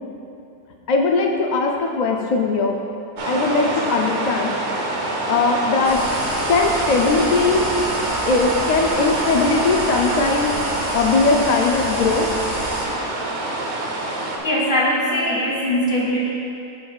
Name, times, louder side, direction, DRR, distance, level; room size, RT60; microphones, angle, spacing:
voice 1, 0.9-2.8 3.2-5.0 5.3-6.0 6.5-7.7 8.3-10.5 10.9-12.3, left 4 dB, 60° left, 1 dB, 0.4 m, -20 dB
sound 1, 3.2-14.4, right 2 dB, 70° right, 1.1 m, -26 dB
sound 2, 5.8-12.8, right 1 dB, 40° right, 1.7 m, -28 dB
voice 2, 14.4-16.3, equal, 45° left, -5 dB, 1.3 m, -21 dB
12.5 x 4.7 x 2.4 m, 2.7 s
omnidirectional pair, 1.2 m